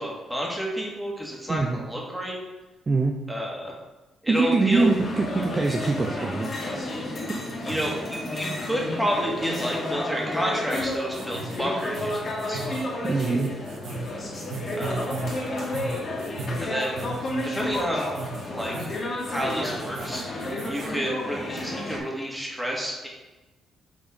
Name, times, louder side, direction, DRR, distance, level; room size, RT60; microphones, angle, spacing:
voice 1, 0.0-2.4 3.3-3.7 4.2-4.9 7.6-12.7 14.8-15.2 16.6-17.0 17.5-18.1 18.5-18.9 19.3-20.2 20.7-23.1, equal, 5° right, -2 dB, 1.9 m, -30 dB
voice 2, 1.5-1.8 2.9-3.2 4.3-6.5 6.8-6.9 13.0-13.6, right 3 dB, 30° right, 1 dB, 0.5 m, -23 dB
sound 1, 4.7-22.0, left 1 dB, 40° left, 1.8 m, -31 dB
sound 2, 10.7-20.9, right 3 dB, 75° right, 1.0 m, -37 dB
5.9 x 4.1 x 5.1 m, 1.1 s
cardioid pair, 90°, 0 cm